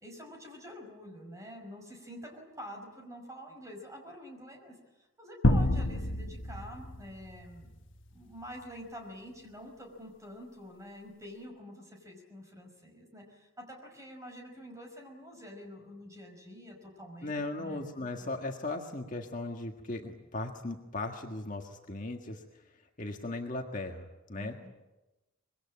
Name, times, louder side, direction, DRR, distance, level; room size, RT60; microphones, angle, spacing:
voice 1, 0.0-7.7 8.1-17.9 24.4-24.7, equal, 15° right, 3 dB, 5.3 m, -47 dB
sound 1, 5.4-8.0, left 1 dB, 60° left, 1.3 m, -29 dB
voice 2, 17.2-22.4 23.0-24.6, left 2 dB, 35° left, 2 dB, 1.7 m, -37 dB
25.5 x 22.0 x 8.7 m, 1.0 s
head